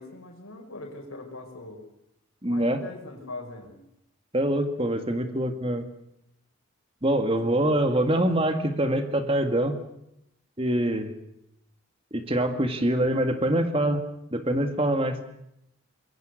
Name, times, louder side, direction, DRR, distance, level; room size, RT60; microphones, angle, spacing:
voice 1, 0.0-1.8 2.4-3.7 7.4-7.7, left 2 dB, 75° left, 3 dB, 5.5 m, -41 dB
voice 2, 2.4-2.8 4.3-5.9 7.0-9.8 10.6-11.1 12.1-14.0 14.3-15.2, right 1 dB, 25° right, 7 dB, 2.0 m, -24 dB
25.5 x 22.0 x 6.5 m, 0.79 s
head